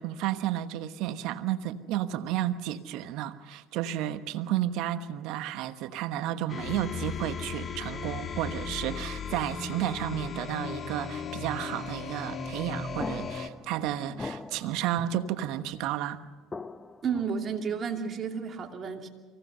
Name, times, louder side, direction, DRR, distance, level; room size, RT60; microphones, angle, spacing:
voice 1, 0.0-16.2, right 12 dB, 70° right, 11 dB, 1.2 m, -32 dB
sound 1, 6.5-13.5, left 5 dB, 40° left, 1.6 m, -36 dB
sound 2, 13.0-15.9 16.5-17.8, left 3 dB, 20° left, 0.8 m, -42 dB
voice 2, 17.0-19.1, right 6 dB, 40° right, 3 dB, 2.8 m, -32 dB
24.5 x 17.5 x 6.8 m, 1.3 s
hypercardioid pair, 80°, 0 cm